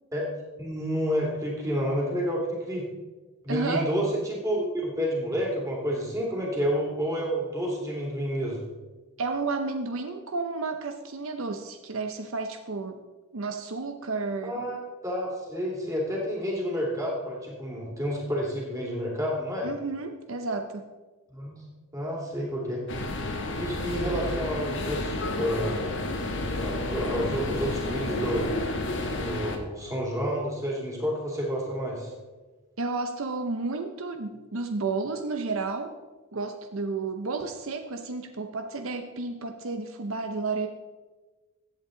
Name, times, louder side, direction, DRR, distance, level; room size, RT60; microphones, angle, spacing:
voice 1, 0.6-2.9 3.4-8.6 14.4-14.8 15.0-19.7 21.3-21.6 21.9-22.8 23.6-25.8 26.6-28.5 29.1-32.1, equal, 15° right, -2 dB, 2.8 m, -29 dB
voice 2, 3.5-3.9 9.2-13.0 13.3-14.6 19.6-20.9 32.8-35.9 36.3-40.7, right 3 dB, 65° right, 6 dB, 0.7 m, -31 dB
sound 1, 22.9-29.6, left 2 dB, 55° left, 1.4 m, -31 dB
15.0 x 8.3 x 3.8 m, 1.3 s
head